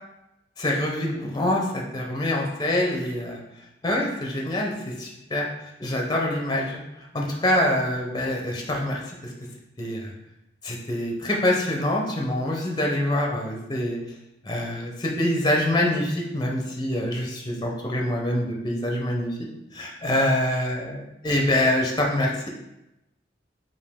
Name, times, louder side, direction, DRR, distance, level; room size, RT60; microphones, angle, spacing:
voice 1, 0.6-3.4 3.8-5.5 5.8-9.3 9.8-10.1 10.6-14.0 14.4-19.4 19.7-22.5, left 1 dB, 25° left, 0 dB, 0.6 m, -25 dB
5.0 x 2.5 x 3.5 m, 0.89 s
head